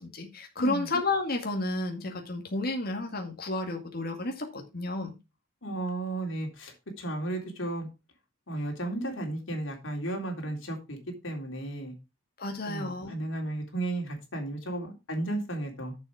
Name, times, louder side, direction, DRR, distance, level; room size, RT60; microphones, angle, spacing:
voice 1, 0.0-5.1 12.4-13.1, left 2 dB, 50° left, 3 dB, 2.1 m, -31 dB
voice 2, 5.6-7.9 8.5-11.0 11.2-11.9 12.7-16.0, right 2 dB, 80° left, 2 dB, 3.5 m, -34 dB
8.2 x 7.2 x 4.8 m, 0.26 s
head